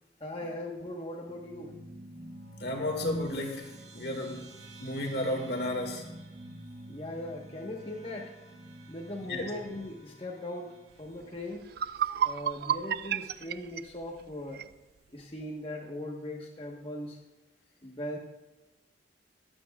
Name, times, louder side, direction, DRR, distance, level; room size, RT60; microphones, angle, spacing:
voice 1, 0.2-1.7 6.9-8.3 8.9-11.7 12.2-14.7 15.1-17.2 17.8-18.2, left 1 dB, 30° left, -3 dB, 1.3 m, -39 dB
sound 1, 1.3-12.0, right 1 dB, 80° right, 2.0 m, -49 dB
voice 2, 2.6-4.5 4.8-6.1 9.3-9.5, left 1 dB, 60° left, 2 dB, 2.1 m, -33 dB
sound 2, 11.2-11.3 11.7-14.7, right 9 dB, 55° right, 0.3 m, -32 dB
22.0 x 8.8 x 2.4 m, 1.1 s
head